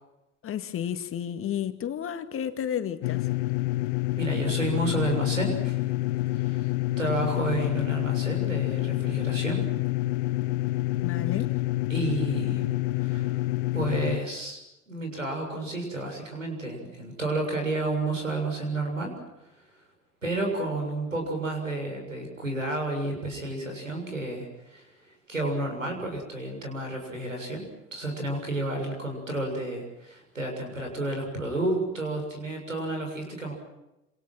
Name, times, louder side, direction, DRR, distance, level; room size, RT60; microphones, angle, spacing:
voice 1, 0.4-3.3 11.0-11.6, left 9 dB, 35° left, 2.2 m, -32 dB
sound 1, 3.0-14.2, left 18 dB, 55° left, 1.0 m, -27 dB
voice 2, 4.2-5.8 6.3-6.7 7.0-9.7 11.9-12.7 13.0-13.4 13.7-14.6 14.9-19.1 20.2-27.6 27.9-33.5, right 2 dB, 85° right, 7.2 m, -31 dB
28.0 x 27.5 x 6.2 m
figure-of-eight pair, 65°, 38 cm